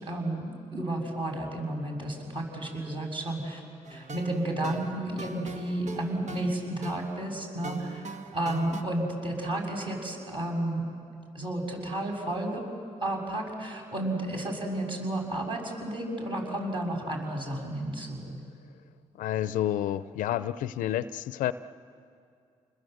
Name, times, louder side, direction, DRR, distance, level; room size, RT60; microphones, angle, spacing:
voice 1, 0.0-3.6 3.9-10.9 11.3-12.6 13.0-18.4, right 1 dB, 40° right, 1 dB, 7.0 m, -32 dB
sound 1, 3.8-8.8, right 3 dB, 65° right, 1.7 m, -42 dB
voice 2, 19.2-21.5, left 12 dB, 90° left, 15 dB, 0.6 m, -29 dB
29.0 x 21.0 x 8.0 m, 2.4 s
cardioid pair, 65°, 13 cm